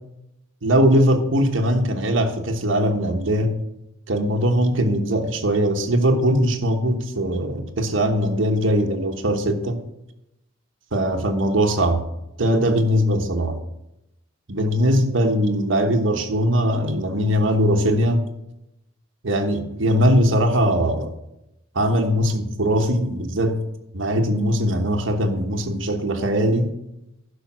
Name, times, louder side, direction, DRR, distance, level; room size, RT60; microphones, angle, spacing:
voice 1, 0.6-3.6 4.1-9.8 10.9-12.0 12.4-13.6 14.5-18.3 19.2-21.1 21.7-23.6 23.9-26.7, equal, 70° right, 1.2 m, -20 dB
11.5 x 5.2 x 6.2 m
head